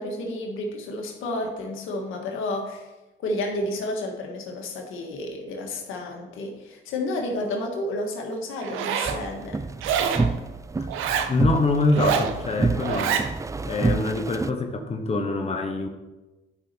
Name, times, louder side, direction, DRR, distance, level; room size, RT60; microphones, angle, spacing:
voice 1, 0.0-2.9 3.2-9.7, left 1 dB, 85° left, 1 dB, 1.8 m, -31 dB
Zipper (clothing), 8.6-9.2 9.8-10.3 10.9-11.3 11.9-12.3 12.8-13.3, right 8 dB, 90° right, 0.8 m, -26 dB
sound 1, 9.1-14.5, right 3 dB, 15° right, 0.4 m, -28 dB
voice 2, 11.3-13.2 13.6-15.9, left 3 dB, 30° left, 4 dB, 1.2 m, -25 dB
11.5 x 5.6 x 4.5 m, 1.1 s
cardioid pair, 90°, 20 cm